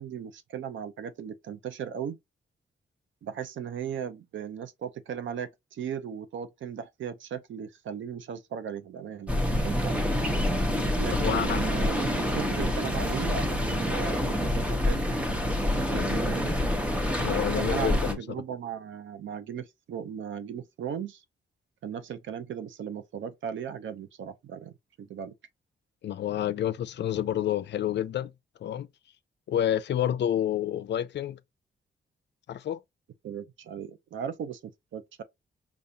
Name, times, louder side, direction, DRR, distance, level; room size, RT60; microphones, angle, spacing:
voice 1, 0.0-2.2 3.2-9.4 9.6-10.0 11.0-15.1 15.7-16.5 17.5-21.2 21.8-25.3 33.2-34.6 34.9-35.2, right 8 dB, 80° right, 0.6 m, -37 dB
sound 1, 9.3-18.1, left 1 dB, 5° right, 0.8 m, -27 dB
voice 2, 11.2-11.6 15.9-16.2 17.2-18.2 26.0-28.3 28.6-28.9 29.5-31.4 32.5-32.8, left 11 dB, 65° left, 0.4 m, -29 dB
5.1 x 2.4 x 2.7 m
wide cardioid pair, 120°, 20 cm